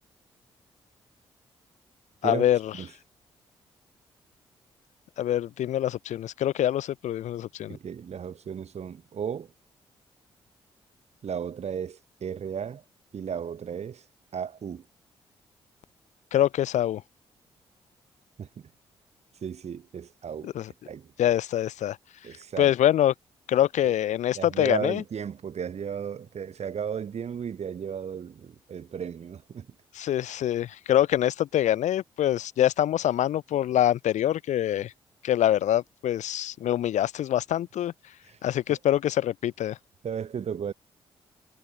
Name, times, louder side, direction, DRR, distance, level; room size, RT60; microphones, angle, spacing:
voice 1, 2.2-2.7 5.2-7.8 16.3-17.0 20.4-20.7 21.2-22.0 22.6-23.1 23.5-25.0 30.0-34.9 35.2-37.9 38.4-39.8, left 12 dB, 70° left, 1.6 m, -25 dB
voice 2, 7.7-9.5 11.2-12.8 13.1-14.0 14.3-14.8 18.4-18.5 19.4-20.5 20.9-21.1 22.2-22.7 23.8-23.9 24.3-29.7 40.0-40.7, right 7 dB, 60° right, 6.2 m, -34 dB
hypercardioid pair, 40°, 13 cm